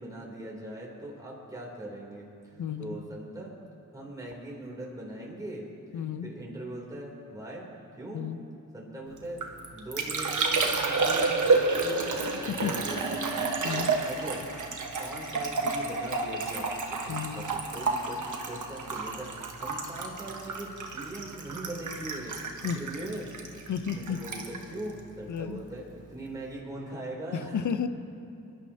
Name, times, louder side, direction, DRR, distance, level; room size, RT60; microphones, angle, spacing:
voice 1, 0.0-3.5 3.9-7.6 8.0-8.3 8.7-13.2 13.5-13.6 14.0-14.5 15.0-23.2 23.9-27.7, right 1 dB, 10° right, -4 dB, 3.3 m, -41 dB
voice 2, 2.6-3.0 5.9-6.3 8.1-8.4 12.5-12.7 13.6-14.1 17.1-17.4 22.6-22.8 23.7-24.2 25.3-25.6 27.3-27.9, left 8 dB, 60° left, 10 dB, 0.8 m, -32 dB
Liquid, 9.2-25.8 26.0-26.6, right 3 dB, 65° right, 1.4 m, -30 dB
23.0 x 11.5 x 2.9 m, 2.6 s
cardioid pair, 70°, 33 cm